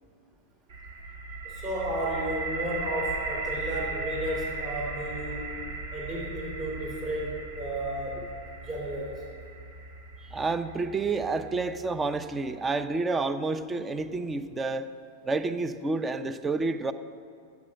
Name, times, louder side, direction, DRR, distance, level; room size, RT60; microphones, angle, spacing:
sound 1, 0.7-12.5, right 3 dB, 75° right, 1.8 m, -37 dB
voice 1, 1.4-5.5 5.9-8.3 8.6-9.2, right 1 dB, 35° right, -2 dB, 3.2 m, -33 dB
voice 2, 10.3-14.9 15.2-16.9, right 3 dB, 15° right, 12 dB, 0.6 m, -29 dB
11.0 x 8.4 x 7.6 m, 2.4 s
hypercardioid pair, 125°, 0 cm